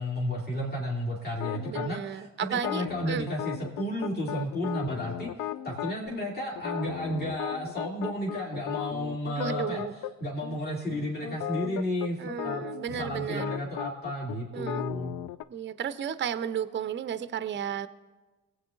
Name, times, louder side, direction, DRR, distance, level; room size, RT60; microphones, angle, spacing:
voice 1, 0.0-5.3 5.6-9.8 10.2-12.6 13.0-15.1, equal, 25° left, -3 dB, 2.4 m, -32 dB
sound 1, 1.4-1.9 2.5-6.0 6.6-10.1 10.4-10.6 10.9-15.4, left 13 dB, 55° left, 0.5 m, -36 dB
voice 2, 1.7-3.3 9.4-9.9 12.2-13.5 14.5-14.9 15.5-17.9, right 8 dB, 30° right, 13 dB, 0.6 m, -33 dB
21.5 x 8.1 x 2.5 m, 1.3 s
hypercardioid pair, 50°, 37 cm